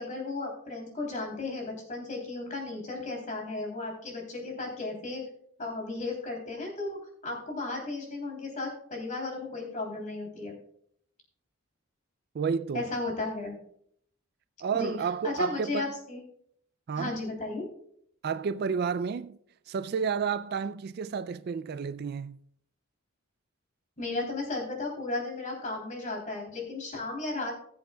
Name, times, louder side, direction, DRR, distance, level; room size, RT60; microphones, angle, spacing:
voice 1, 0.0-5.2 5.6-10.6 12.7-13.6 14.7-14.9 15.2-16.2 16.9-17.7 24.0-27.5, left 3 dB, 35° left, 3.3 m, -35 dB
voice 2, 12.3-12.9 14.6-15.9 16.9-17.2 18.2-19.4 19.7-22.4, right 6 dB, 50° right, 0.3 m, -31 dB
19.5 x 7.7 x 2.3 m
head